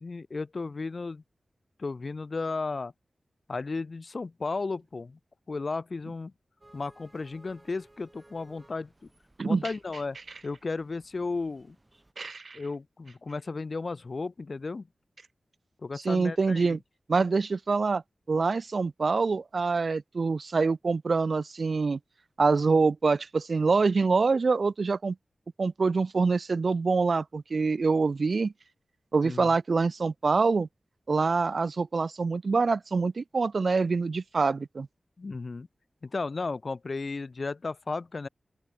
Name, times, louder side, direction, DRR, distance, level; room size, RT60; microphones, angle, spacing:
voice 1, 0.0-1.2 1.8-2.9 3.5-5.2 5.5-6.3 6.7-8.9 9.4-10.2 10.4-11.8 12.5-14.9 15.8-16.7 29.2-29.5 35.2-35.7 36.0-38.3, left 3 dB, 55° left, 0.7 m, -34 dB
sound 1, 6.6-12.1, right 2 dB, 25° right, 3.4 m, -60 dB
voice 2, 12.2-12.6 16.0-16.8 17.1-18.0 18.3-22.0 22.4-25.2 25.6-28.5 29.1-30.7 31.1-34.9, right 4 dB, 60° right, 0.4 m, -25 dB
open air
wide cardioid pair, 65°, 0 cm